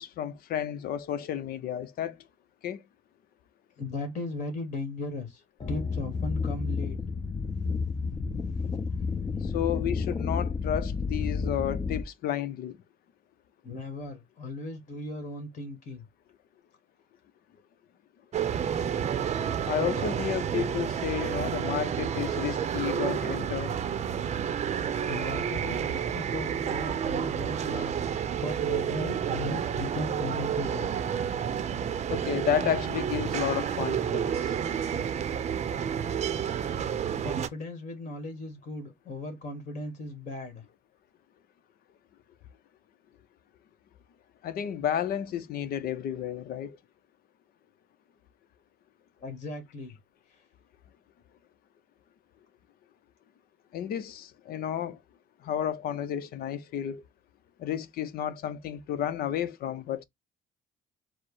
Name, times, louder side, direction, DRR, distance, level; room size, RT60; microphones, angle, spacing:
voice 1, 0.0-2.2 2.6-2.8 9.4-12.8 19.7-23.8 32.1-34.5 44.4-46.8 53.7-55.0 55.4-57.0 57.6-60.0, left 10 dB, 65° left, 0.7 m, -32 dB
voice 2, 3.8-5.4 5.7-7.0 13.6-16.0 25.0-28.0 28.4-30.9 37.2-40.6 49.2-50.0 50.3-50.4, left 2 dB, 45° left, 1.7 m, -37 dB
sound 1, 5.6-12.0, left 4 dB, 30° left, 0.8 m, -31 dB
sound 2, 18.3-37.5, right 8 dB, 40° right, 0.6 m, -30 dB
4.7 x 2.1 x 4.6 m
cardioid pair, 110°, 17 cm